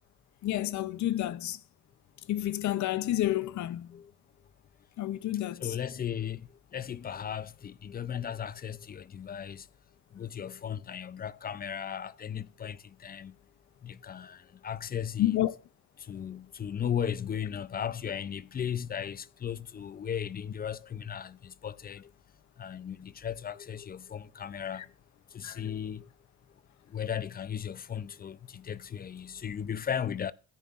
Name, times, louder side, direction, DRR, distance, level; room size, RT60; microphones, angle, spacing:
voice 1, 0.4-1.6 2.3-4.0 5.0-5.8 15.2-15.5 25.4-25.6, left 14 dB, 70° left, 0.7 m, -30 dB
voice 2, 5.6-9.7 10.1-13.3 13.8-15.4 16.0-22.1 22.6-24.9 25.3-26.1 26.9-30.3, left 8 dB, 30° left, 0.4 m, -36 dB
14.5 x 9.3 x 2.5 m
cardioid pair, 90°, 30 cm